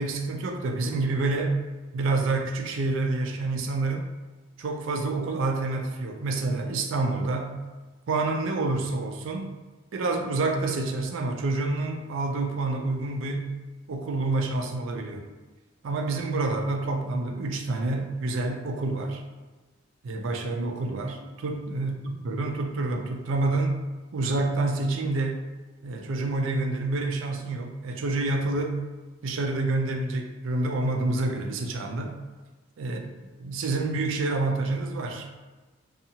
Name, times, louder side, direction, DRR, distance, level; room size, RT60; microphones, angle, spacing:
voice 1, 0.0-1.6 1.9-4.1 4.6-7.5 8.1-9.5 9.9-13.5 13.9-15.2 15.8-19.2 20.0-23.8 24.1-25.5 25.8-28.8 29.2-32.2 32.8-33.0 33.4-35.3, right 2 dB, 70° right, 3 dB, 0.4 m, -28 dB
2.7 x 2.3 x 2.7 m, 1.2 s
head